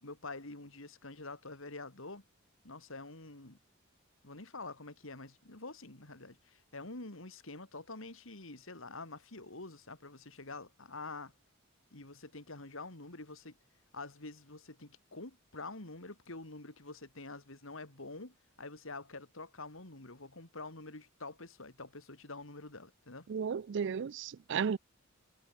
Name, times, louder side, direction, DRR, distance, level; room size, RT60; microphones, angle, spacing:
voice 1, 0.0-2.2 2.6-3.6 4.2-11.3 11.9-13.6 13.9-23.3, left 3 dB, 65° left, 3.1 m, -47 dB
voice 2, 23.3-24.8, right 6 dB, 60° right, 0.4 m, -34 dB
head